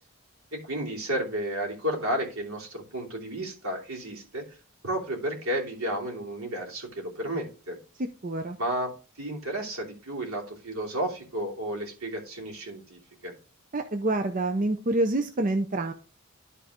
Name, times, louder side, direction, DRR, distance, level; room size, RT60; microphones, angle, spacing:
voice 1, 0.5-4.6 4.8-7.8 8.6-8.9 9.2-13.3, right 1 dB, 75° right, 0 dB, 2.9 m, -32 dB
voice 2, 8.2-8.6 13.7-15.9, right 2 dB, 35° right, 6 dB, 0.6 m, -27 dB
12.0 x 4.1 x 3.6 m, 0.34 s
head